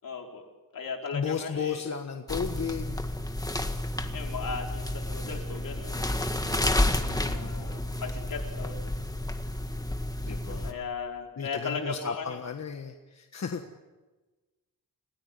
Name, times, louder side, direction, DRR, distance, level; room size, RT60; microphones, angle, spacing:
voice 1, 0.0-0.4 0.7-1.9 4.1-6.3 7.0-8.9 10.6-12.4, left 5 dB, 75° left, 1 dB, 5.0 m, -37 dB
voice 2, 1.1-3.0 7.0-7.6 10.2-10.8 11.4-13.6, left 6 dB, 50° left, 5 dB, 1.5 m, -34 dB
sound 1, 2.3-10.7, left 1 dB, 10° left, 1.7 m, -31 dB
30.0 x 18.0 x 9.5 m, 1.2 s
wide cardioid pair, 155°, 33 cm